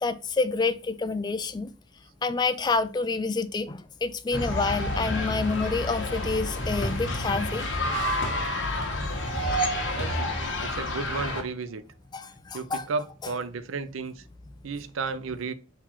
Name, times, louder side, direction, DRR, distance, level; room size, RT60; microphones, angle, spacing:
voice 1, 0.0-1.7 2.2-7.7 12.1-12.9, left 3 dB, 20° left, 0.3 m, -28 dB
sound 1, 4.3-11.4, left 2 dB, 70° left, 1.2 m, -29 dB
sound 2, 9.1-11.3, right 4 dB, 45° left, 0.7 m, -32 dB
voice 2, 9.9-10.3 10.6-11.8 12.5-14.2 14.6-15.5, right 4 dB, 90° right, 0.5 m, -33 dB
4.0 x 2.9 x 4.2 m
head